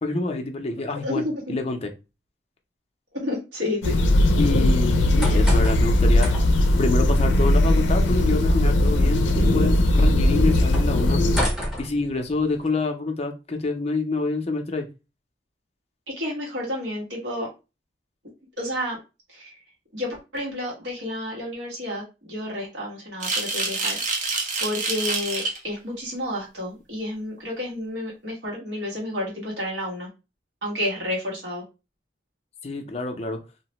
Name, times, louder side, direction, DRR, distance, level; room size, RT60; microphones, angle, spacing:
voice 1, 0.0-1.2 1.5-1.9 4.4-6.3 6.8-11.2 11.8-14.9 32.6-33.4, left 2 dB, 35° left, 0.5 m, -27 dB
voice 2, 1.0-1.5 3.1-4.0 16.2-17.5 18.6-19.0 19.3-19.6 19.9-30.1 30.6-31.6, left 1 dB, 75° right, 1.4 m, -30 dB
sound 1, 3.8-11.4, left 1 dB, 90° left, 0.4 m, -19 dB
sound 2, 4.9-12.7, equal, 5° right, 0.7 m, -35 dB
sound 3, 23.2-25.6, right 3 dB, 45° right, 0.7 m, -27 dB
2.8 x 2.1 x 3.0 m
head